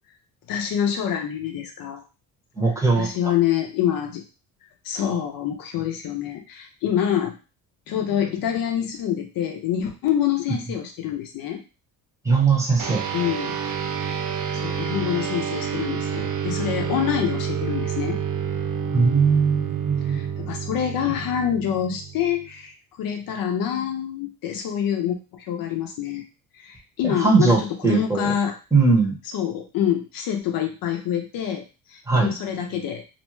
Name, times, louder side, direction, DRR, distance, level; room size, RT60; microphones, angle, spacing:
voice 1, 0.5-2.0 3.0-4.2 4.8-7.3 7.9-11.6 13.1-13.6 14.5-18.2 20.0-26.2 26.5-28.5 29.3-31.6 31.9-33.0, left 9 dB, 60° left, 4 dB, 0.6 m, -26 dB
voice 2, 2.6-3.1 12.2-13.0 18.9-20.3 27.0-28.3 28.7-29.1 32.1-32.3, right 4 dB, 10° right, -2 dB, 0.9 m, -20 dB
sound 1, 12.8-22.5, right 7 dB, 50° right, 0.6 m, -29 dB
2.5 x 2.1 x 3.1 m, 0.32 s
cardioid pair, 100°, 38 cm